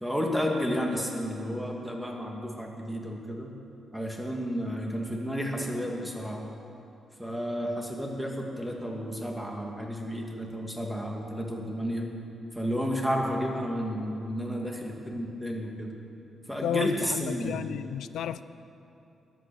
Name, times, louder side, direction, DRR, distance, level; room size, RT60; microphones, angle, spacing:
voice 1, 0.0-3.5 3.9-6.4 7.2-12.1 12.5-15.9 16.5-17.7, equal, ahead, 0 dB, 1.8 m, -32 dB
voice 2, 16.6-18.4, left 10 dB, 90° left, 14 dB, 0.4 m, -32 dB
21.0 x 8.6 x 6.9 m, 2.9 s
wide cardioid pair, 150°, 0 cm